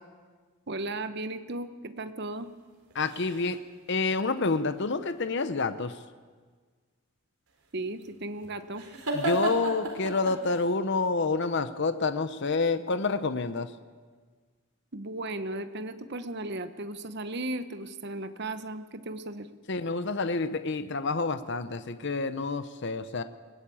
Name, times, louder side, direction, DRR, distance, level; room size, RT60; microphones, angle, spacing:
voice 1, 0.7-2.5 7.7-8.9 14.9-19.5, right 2 dB, 50° right, 10 dB, 1.0 m, -36 dB
sound 1, 2.7-3.7 7.5-10.7, right 2 dB, 80° right, 4.1 m, -34 dB
voice 2, 2.9-3.6 3.9-6.0 9.1-13.7 19.7-23.2, left 3 dB, 50° left, 11 dB, 0.7 m, -28 dB
21.0 x 16.5 x 8.6 m, 1.5 s
head